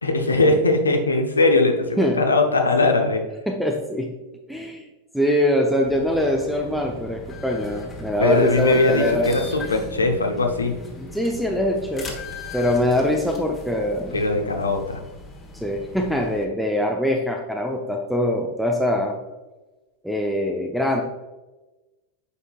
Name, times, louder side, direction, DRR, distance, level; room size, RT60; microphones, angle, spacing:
voice 1, 0.0-3.2 8.2-10.7 14.1-15.0, left 2 dB, 75° left, 4 dB, 0.8 m, -20 dB
voice 2, 3.5-4.2 4.5-4.9 5.1-9.4 9.7-9.8 11.0-12.1 12.5-14.2 15.5-19.2 20.0-21.0, left 1 dB, ahead, 1 dB, 0.6 m, -23 dB
sound 1, 5.8-16.4, left 3 dB, 20° left, 1.2 m, -38 dB
8.2 x 5.5 x 2.4 m, 1.1 s
figure-of-eight pair, 90°, 0 cm